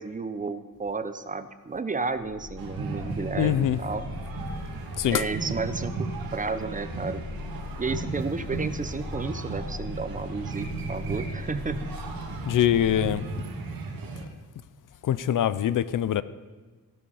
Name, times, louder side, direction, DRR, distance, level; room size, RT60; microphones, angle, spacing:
voice 1, 0.0-4.1 5.1-7.2 7.8-11.9, right 4 dB, 20° right, 0.7 m, -32 dB
Purr, 2.1-13.4, left 3 dB, 35° left, 2.1 m, -40 dB
sound 1, 2.6-14.3, right 4 dB, 75° right, 2.2 m, -35 dB
voice 2, 3.4-3.8 5.0-5.2 12.5-13.2 15.0-16.2, left 10 dB, 60° left, 0.6 m, -23 dB
15.5 x 11.5 x 5.5 m
cardioid pair, 130°, 36 cm